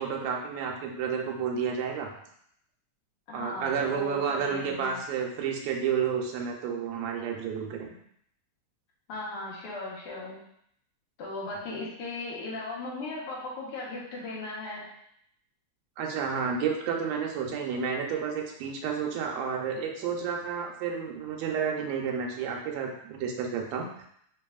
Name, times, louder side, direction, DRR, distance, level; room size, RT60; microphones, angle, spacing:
voice 1, 0.0-2.1 3.3-8.0 16.0-23.9, right 6 dB, 75° right, 1 dB, 1.7 m, -31 dB
voice 2, 3.3-5.0 9.1-10.4 11.2-14.9, left 2 dB, 65° left, -5 dB, 1.4 m, -37 dB
4.1 x 3.3 x 2.3 m, 0.71 s
omnidirectional pair, 3.5 m